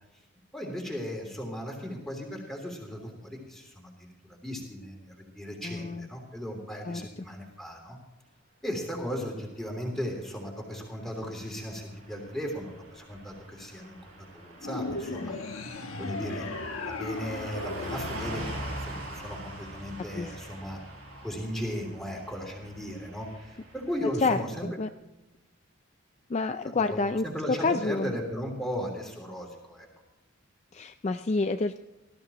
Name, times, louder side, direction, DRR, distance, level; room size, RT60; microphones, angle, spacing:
voice 1, 0.5-8.0 8.6-16.5 16.8-20.8 21.2-24.7 26.6-29.9, equal, ahead, 0 dB, 3.1 m, -36 dB
voice 2, 5.6-6.1 6.8-7.0 20.2-20.3 24.2-24.9 26.3-28.1 30.7-31.8, left 3 dB, 30° left, 9 dB, 0.4 m, -28 dB
Car passing by / Truck, 11.1-24.1, right 1 dB, 90° right, 5.5 m, -43 dB
sound 1, 14.6-19.1, left 3 dB, 80° left, 1.3 m, -37 dB
18.5 x 14.0 x 3.0 m, 1.0 s
head